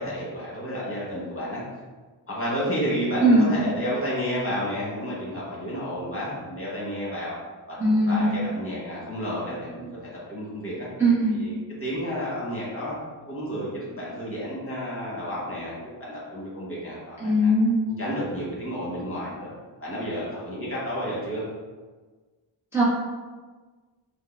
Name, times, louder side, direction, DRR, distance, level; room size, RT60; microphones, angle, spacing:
voice 1, 0.0-1.6 2.3-7.3 7.7-10.9 11.3-17.5 18.0-19.5 19.8-21.4, equal, 30° left, -7 dB, 1.3 m, -31 dB
voice 2, 7.8-8.3 11.0-11.4 17.2-17.8 22.7-22.8, right 1 dB, 5° right, -10 dB, 0.9 m, -19 dB
5.1 x 2.0 x 2.5 m, 1.4 s
wide cardioid pair, 105°, 45 cm